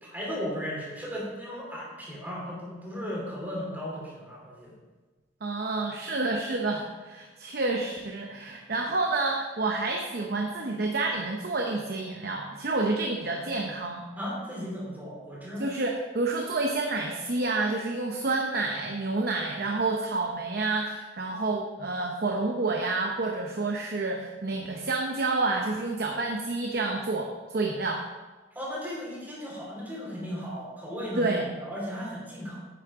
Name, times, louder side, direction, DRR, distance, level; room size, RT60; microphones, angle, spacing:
voice 1, 0.0-4.7 14.2-15.7 28.5-32.6, equal, 10° right, -5 dB, 3.0 m, -36 dB
voice 2, 5.4-14.1 15.6-28.0 31.2-31.5, right 3 dB, 55° right, 1 dB, 0.8 m, -29 dB
9.4 x 8.5 x 3.7 m, 1.3 s
head